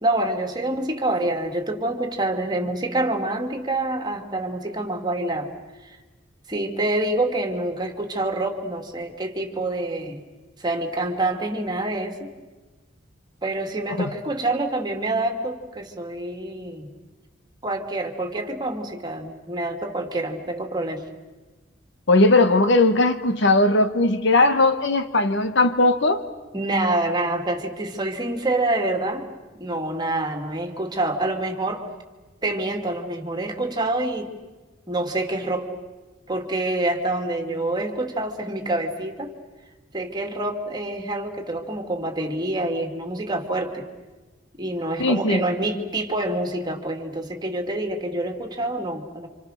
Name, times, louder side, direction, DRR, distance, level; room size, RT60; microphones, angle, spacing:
voice 1, 0.0-5.5 5.8-6.0 6.5-10.2 10.6-12.3 13.4-16.9 17.6-21.0 26.5-29.3 29.6-31.8 32.4-34.3 34.9-35.7 36.3-39.3 39.9-43.9 44.6-49.3, right 2 dB, 20° right, 3 dB, 2.7 m, -26 dB
voice 2, 22.1-26.2 45.0-45.4, left 2 dB, 60° left, 9 dB, 1.4 m, -18 dB
29.5 x 27.0 x 6.7 m, 1.2 s
head